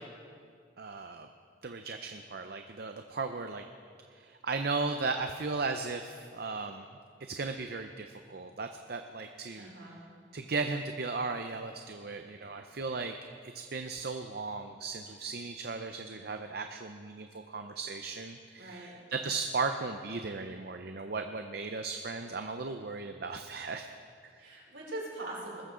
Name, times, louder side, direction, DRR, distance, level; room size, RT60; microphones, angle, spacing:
voice 1, 0.8-1.3 1.6-3.6 4.2-6.8 7.3-9.7 10.3-13.1 13.4-23.9 24.2-24.3, right 4 dB, 55° right, 6 dB, 0.6 m, -36 dB
voice 2, 9.6-10.0 18.6-18.9 24.4-25.6, right 1 dB, 75° right, -4 dB, 4.9 m, -41 dB
20.5 x 14.0 x 3.8 m, 2.1 s
head